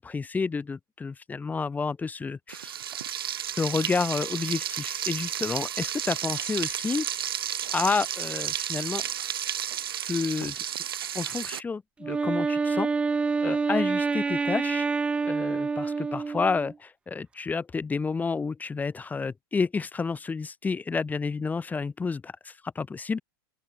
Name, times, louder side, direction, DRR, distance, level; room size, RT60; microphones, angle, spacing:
voice 1, 0.0-2.7 3.6-7.1 7.7-9.0 10.1-10.6 11.1-12.9 13.4-14.9 15.3-23.2, left 4 dB, 15° left, 3.5 m, -30 dB
Frying (food), 2.5-11.6, right 10 dB, 85° right, 4.0 m, -32 dB
Wind instrument woodwind instrument, 12.0-16.7, right 4 dB, 10° right, 0.3 m, -27 dB
open air
hypercardioid pair, 125°, 12 cm